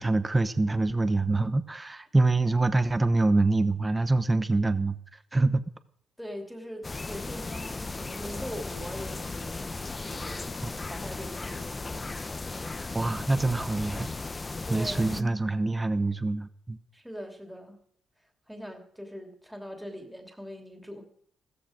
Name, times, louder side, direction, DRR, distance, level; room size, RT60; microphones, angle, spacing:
voice 1, 0.0-5.0 5.3-5.6 12.9-14.1 14.7-16.8, right 2 dB, 15° right, 12 dB, 0.9 m, -25 dB
voice 2, 6.2-9.7 10.0-10.6 10.9-12.7 14.6-15.0 16.9-17.8 18.5-21.0, equal, ahead, 3 dB, 2.8 m, -42 dB
sound 1, 6.8-15.2, left 3 dB, 25° left, 0.9 m, -36 dB
15.0 x 13.5 x 5.1 m, 0.65 s
cardioid pair, 90°, 0 cm